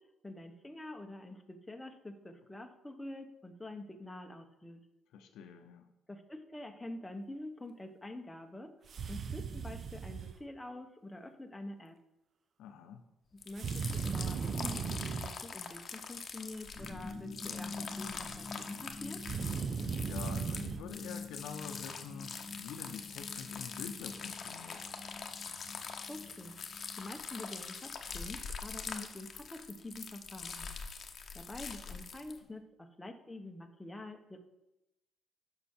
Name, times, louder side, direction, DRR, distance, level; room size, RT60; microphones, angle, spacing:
voice 1, 0.2-4.8 6.1-8.7 9.1-12.0 13.3-19.2 26.1-26.6 27.0-30.7 31.3-34.4, left 1 dB, 10° left, 4 dB, 1.0 m, -46 dB
voice 2, 5.1-5.8 12.6-13.0 20.1-24.9, left 7 dB, 90° left, 7 dB, 0.7 m, -46 dB
sound 1, 8.9-10.4 13.6-15.4 19.2-20.8, right 6 dB, 55° right, 0.6 m, -37 dB
sound 2, 13.4-32.4, left 5 dB, 50° left, 0.9 m, -44 dB
sound 3, 16.7-28.4, left 3 dB, 20° right, 1.3 m, -47 dB
9.5 x 5.9 x 4.4 m, 0.91 s
cardioid pair, 90°, 0 cm